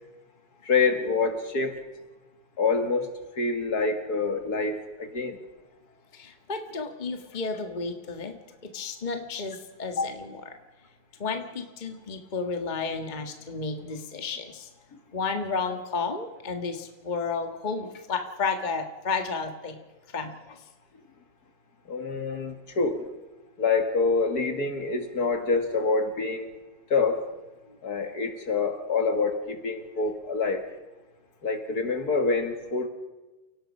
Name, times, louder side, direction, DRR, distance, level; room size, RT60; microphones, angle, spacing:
voice 1, 0.6-1.8 2.6-5.4 10.0-10.1 21.9-23.1 23.6-26.5 26.9-27.3 27.8-30.6 31.4-32.9, left 4 dB, 55° left, 6 dB, 2.4 m, -26 dB
voice 2, 6.1-8.4 8.7-10.6 11.2-14.7 15.1-19.8 20.1-20.6, left 4 dB, 25° left, 6 dB, 1.6 m, -32 dB
29.5 x 18.0 x 5.4 m, 1.2 s
omnidirectional pair, 2.1 m